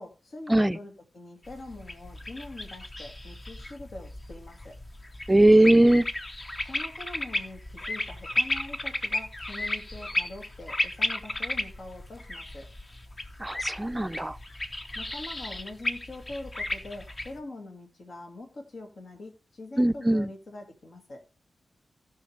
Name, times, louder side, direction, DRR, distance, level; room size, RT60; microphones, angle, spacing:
voice 1, 0.0-4.8 6.6-12.7 14.9-21.2, left 2 dB, 60° left, 2.1 m, -43 dB
sound 1, 1.5-17.4, left 1 dB, 30° left, 0.9 m, -34 dB
voice 2, 5.3-6.1 13.4-14.4 19.8-20.3, right 1 dB, 15° right, 0.5 m, -20 dB
17.0 x 5.8 x 3.4 m
wide cardioid pair, 105°, 0 cm